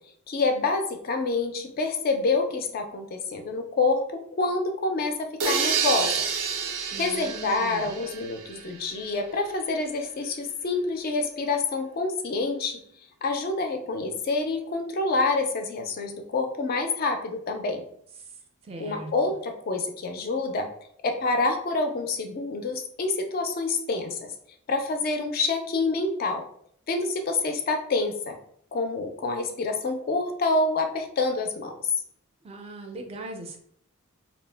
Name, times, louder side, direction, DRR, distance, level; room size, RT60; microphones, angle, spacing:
voice 1, 0.3-6.1 7.0-12.8 13.2-17.8 18.8-20.7 21.0-24.2 24.7-26.4 26.9-28.4 28.7-31.9, left 3 dB, 40° left, 5 dB, 0.3 m, -27 dB
sound 1, 5.4-9.1, right 6 dB, 85° right, 0.4 m, -29 dB
voice 2, 6.9-7.9 18.7-19.1 32.4-33.6, right 2 dB, 25° right, 3 dB, 0.4 m, -39 dB
2.7 x 2.0 x 3.2 m, 0.65 s
head